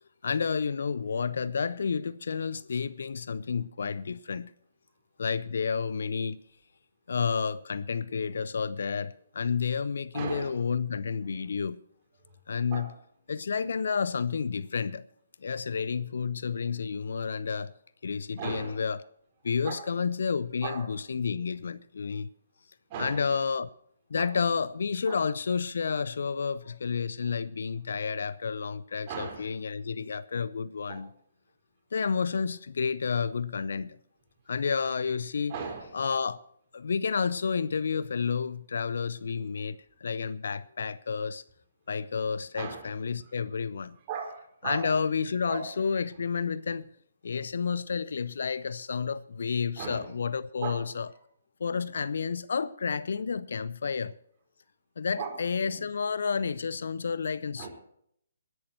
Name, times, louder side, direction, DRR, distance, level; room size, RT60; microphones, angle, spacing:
voice 1, 0.2-4.5 5.2-6.4 7.1-11.8 12.5-12.9 13.3-15.0 15.4-17.7 18.0-19.0 19.4-22.3 23.0-23.7 24.1-31.1 31.9-34.0 34.5-35.5 35.9-36.4 36.7-41.4 41.9-44.0 44.6-46.9 47.2-51.1 51.6-54.2 55.0-57.7, left 5 dB, 60° left, 0.6 m, -30 dB
voice 2, 10.1-10.6 11.3-11.4 12.3-12.4 12.7-12.9 18.4-18.8 19.6-19.9 20.6-20.9 22.9-23.3 24.1-24.3 25.0-25.2 29.1-29.5 30.9-31.0 35.5-36.0 42.5-42.9 43.2-43.3 44.0-44.9 45.5-45.7 49.8-50.2 50.6-50.8 51.1-51.2 51.7-52.0 55.2-55.9 57.6-57.7, right 6 dB, 30° right, 4.7 m, -38 dB
19.5 x 11.0 x 4.5 m
figure-of-eight pair, 135°, 0 cm